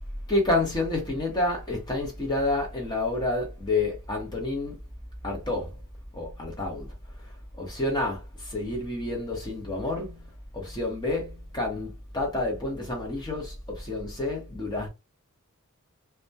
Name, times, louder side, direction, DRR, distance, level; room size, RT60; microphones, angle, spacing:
voice 1, 0.3-4.8 5.2-5.8 6.1-6.9 7.6-10.2 10.5-14.9, left 2 dB, 20° left, 0.8 m, -29 dB
2.2 x 2.1 x 2.6 m
head